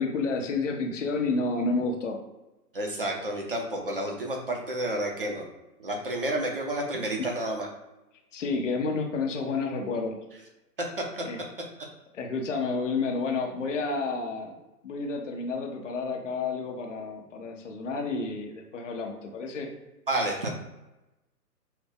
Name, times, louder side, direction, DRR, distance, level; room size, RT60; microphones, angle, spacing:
voice 1, 0.0-2.2 7.2-7.3 8.3-10.2 11.2-11.4 12.1-14.5 14.8-19.7, left 3 dB, 50° left, 2 dB, 0.7 m, -30 dB
voice 2, 2.7-5.4 5.8-7.7 11.1-11.2 20.1-20.5, right 1 dB, 40° right, 0 dB, 0.4 m, -30 dB
2.6 x 2.1 x 3.8 m, 1.0 s
figure-of-eight pair, 125°, 48 cm